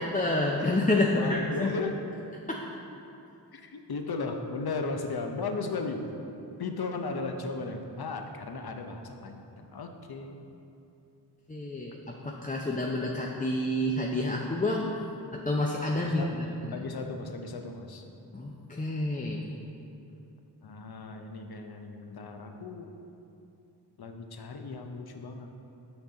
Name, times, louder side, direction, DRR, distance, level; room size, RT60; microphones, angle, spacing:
voice 1, 0.0-1.7 2.5-2.6 11.5-15.0 15.3-16.2 16.7-16.8 18.3-19.5, left 1 dB, 20° left, -1 dB, 0.5 m, -29 dB
voice 2, 1.1-1.9 3.5-6.0 6.6-10.4 15.9-18.0 20.6-22.9 24.0-25.5, left 3 dB, 60° left, 5 dB, 0.7 m, -36 dB
6.9 x 5.9 x 3.8 m, 2.8 s
wide cardioid pair, 50°, 42 cm